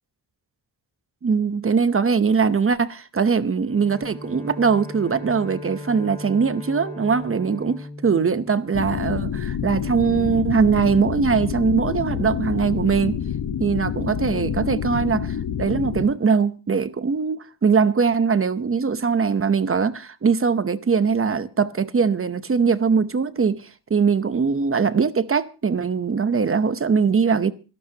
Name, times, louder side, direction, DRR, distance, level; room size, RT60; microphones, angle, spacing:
voice 1, 1.2-13.2 13.6-27.5, right 5 dB, 30° right, 0.8 m, -21 dB
Bowed string instrument, 3.6-9.2, left 2 dB, 5° left, 4.1 m, -38 dB
sound 1, 8.7-16.1, left 8 dB, 75° left, 1.2 m, -27 dB
25.5 x 12.0 x 2.8 m
wide cardioid pair, 115°, 41 cm